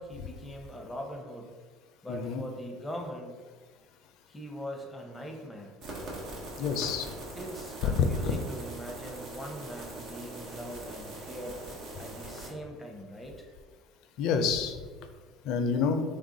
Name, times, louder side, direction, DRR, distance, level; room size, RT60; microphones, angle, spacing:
voice 1, 0.0-1.5 2.0-3.4 4.3-5.7 7.3-11.6 12.0-13.5, equal, 10° left, 2 dB, 0.6 m, -41 dB
voice 2, 2.1-2.4 6.6-7.1 7.8-8.3 14.2-14.8 15.4-16.0, left 5 dB, 65° left, 7 dB, 0.4 m, -27 dB
sound 1, 5.8-12.5, right 2 dB, 60° right, 1.1 m, -42 dB
3.4 x 2.3 x 3.8 m, 1.4 s
supercardioid pair, 95°, 0 cm